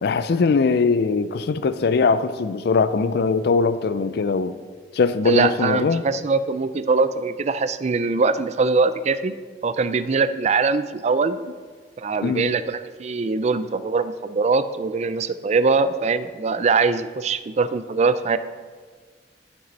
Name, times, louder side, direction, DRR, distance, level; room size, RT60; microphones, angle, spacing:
voice 1, 0.0-4.5 4.9-6.0 12.2-12.6, left 4 dB, 60° left, 13 dB, 0.4 m, -21 dB
voice 2, 5.3-9.3 9.6-11.4 12.0-18.4, right 4 dB, 40° right, 13 dB, 0.4 m, -22 dB
11.5 x 6.2 x 4.1 m, 1.5 s
head